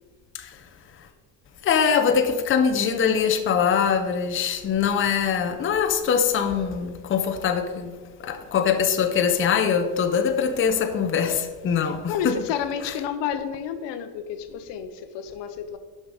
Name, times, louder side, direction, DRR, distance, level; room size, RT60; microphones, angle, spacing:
voice 1, 1.6-12.4, left 7 dB, 30° left, 0.6 m, -23 dB
voice 2, 11.8-15.8, left 8 dB, 65° left, 0.8 m, -30 dB
5.8 x 5.7 x 4.8 m
cardioid pair, 110°, 45 cm